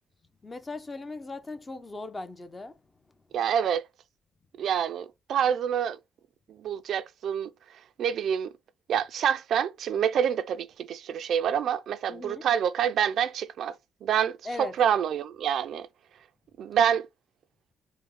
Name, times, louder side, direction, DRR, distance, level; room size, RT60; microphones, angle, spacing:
voice 1, 0.4-2.7 12.1-12.4 14.4-14.7, left 2 dB, 25° left, 0.6 m, -38 dB
voice 2, 3.3-3.8 4.6-6.0 6.5-7.5 8.0-8.5 8.9-13.8 14.0-15.9 16.6-17.1, right 8 dB, 70° right, 0.3 m, -27 dB
4.4 x 2.1 x 3.1 m
cardioid pair, 90°, 0 cm